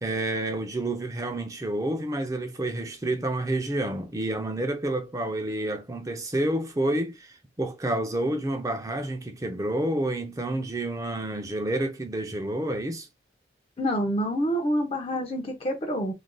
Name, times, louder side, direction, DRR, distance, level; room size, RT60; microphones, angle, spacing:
voice 1, 0.0-13.1, right 1 dB, 20° right, 0.4 m, -29 dB
voice 2, 13.8-16.1, equal, 30° left, 0.5 m, -27 dB
3.3 x 2.5 x 2.2 m
head